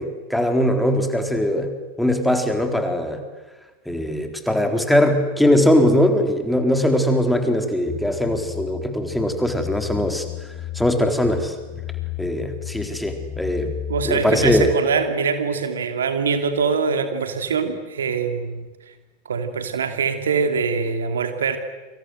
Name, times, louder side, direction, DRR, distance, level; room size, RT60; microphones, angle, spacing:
voice 1, 0.0-3.2 3.9-10.2 10.7-11.5 12.2-13.7 14.1-14.7, left 1 dB, ahead, 5 dB, 3.9 m, -20 dB
sound 1, 7.9-14.8, left 12 dB, 20° left, 3.6 m, -33 dB
voice 2, 13.9-18.9 19.2-21.6, right 5 dB, 65° right, 7 dB, 2.9 m, -23 dB
29.0 x 25.5 x 7.9 m, 1.2 s
figure-of-eight pair, 90°, 0 cm